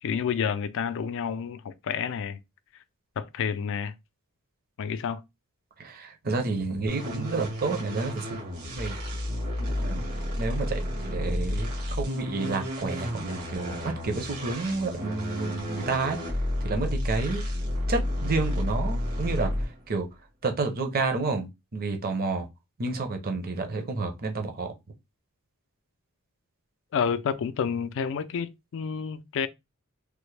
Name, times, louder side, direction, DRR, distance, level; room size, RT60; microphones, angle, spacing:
voice 1, 0.0-2.4 3.2-3.9 4.8-5.2 26.9-29.5, left 7 dB, 60° left, 0.4 m, -29 dB
voice 2, 5.8-8.2 8.7-9.0 9.6-10.0 10.4-16.2 16.6-17.5 17.9-19.5 19.9-20.1 20.4-22.5 22.8-24.7, right 3 dB, 40° right, 0.6 m, -30 dB
sound 1, 6.9-19.8, left 1 dB, 85° right, 1.7 m, -31 dB
3.3 x 2.1 x 3.2 m
head